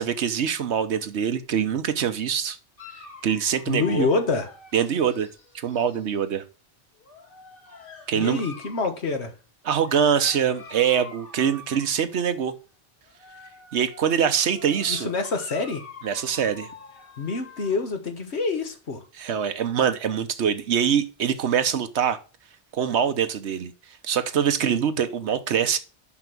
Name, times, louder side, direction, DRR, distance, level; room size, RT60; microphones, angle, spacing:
voice 1, 0.0-2.6 3.2-4.1 4.7-5.3 5.6-6.4 8.1-8.4 9.6-12.5 13.7-15.1 16.0-16.7 19.1-22.2 22.7-23.7 24.0-25.8, right 8 dB, 85° right, 1.2 m, -24 dB
Dog, 2.8-6.2 7.0-8.9 9.7-12.3 13.0-17.9, left 3 dB, 55° left, 2.0 m, -45 dB
voice 2, 3.7-4.5 8.1-9.3 14.9-15.8 17.2-19.0, left 4 dB, 80° left, 1.6 m, -26 dB
5.9 x 5.8 x 5.9 m
omnidirectional pair, 1.1 m